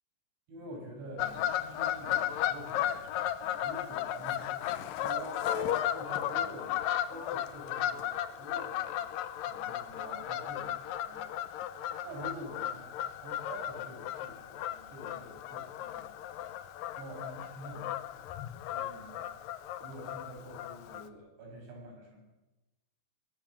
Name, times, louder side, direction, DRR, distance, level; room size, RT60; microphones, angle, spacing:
voice 1, 0.5-6.8 7.1-9.1 9.5-11.3 12.0-12.9 13.1-18.0 18.7-19.3 19.8-22.2, right 1 dB, 75° right, 1 dB, 8.8 m, -47 dB
Fowl / Bird vocalization bird call bird song, 1.2-21.1, left 11 dB, 80° left, 1.9 m, -35 dB
22.5 x 18.5 x 7.3 m, 1.1 s
omnidirectional pair, 5.3 m